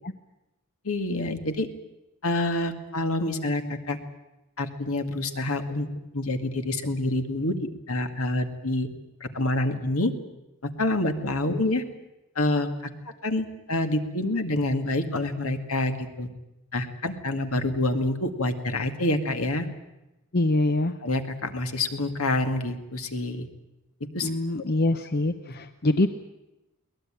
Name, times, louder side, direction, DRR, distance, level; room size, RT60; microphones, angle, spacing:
voice 1, 0.8-1.7 2.2-4.0 4.6-5.9 6.1-8.9 9.2-10.1 10.8-11.8 12.4-12.7 13.2-16.3 16.7-19.7 21.0-23.5 24.1-24.3, left 2 dB, 70° left, 7 dB, 2.1 m, -27 dB
voice 2, 20.3-20.9 24.2-26.1, left 2 dB, 45° left, 10 dB, 0.8 m, -24 dB
22.0 x 19.0 x 9.0 m, 0.96 s
head